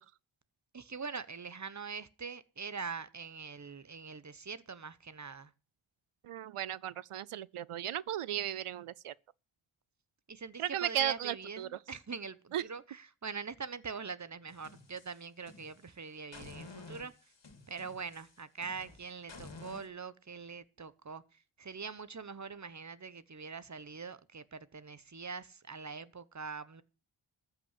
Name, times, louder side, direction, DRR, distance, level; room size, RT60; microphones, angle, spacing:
voice 1, 0.7-5.5 10.3-17.1 17.7-26.8, right 5 dB, 35° right, 1.0 m, -43 dB
voice 2, 6.2-9.1 10.6-11.7 12.5-12.6, right 11 dB, 85° right, 0.6 m, -35 dB
sound 1, 14.5-15.9 16.3-19.9, left 3 dB, 55° left, 2.7 m, -51 dB
14.0 x 5.9 x 9.6 m
wide cardioid pair, 85°, 50 cm